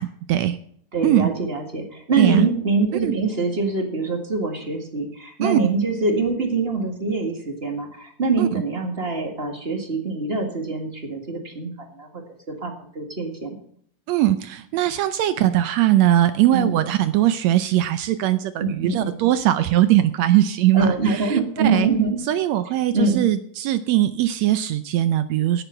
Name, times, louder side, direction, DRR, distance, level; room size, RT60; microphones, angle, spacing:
voice 1, 0.9-12.2 12.6-13.6 15.4-15.6 16.5-16.7 18.6-19.1 20.7-22.2 22.9-23.3, right 4 dB, 25° right, 3 dB, 1.3 m, -24 dB
voice 2, 2.2-2.5 3.0-3.1 5.4-5.6 8.4-8.6 14.1-21.9 22.3-25.6, right 13 dB, 85° right, 12 dB, 1.5 m, -20 dB
16.5 x 7.0 x 5.7 m, 0.64 s
omnidirectional pair, 3.8 m